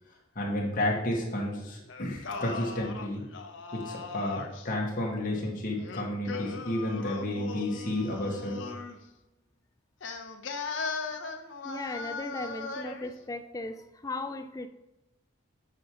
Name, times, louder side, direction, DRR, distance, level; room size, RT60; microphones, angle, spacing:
voice 1, 0.3-3.2 3.7-8.6, left 1 dB, 45° left, -2 dB, 1.4 m, -31 dB
Singing, 1.9-4.7 5.8-9.0 10.0-13.1, left 4 dB, 65° left, 0.7 m, -38 dB
voice 2, 11.6-14.7, left 2 dB, 15° left, 9 dB, 0.3 m, -37 dB
7.8 x 4.7 x 2.9 m, 0.97 s
head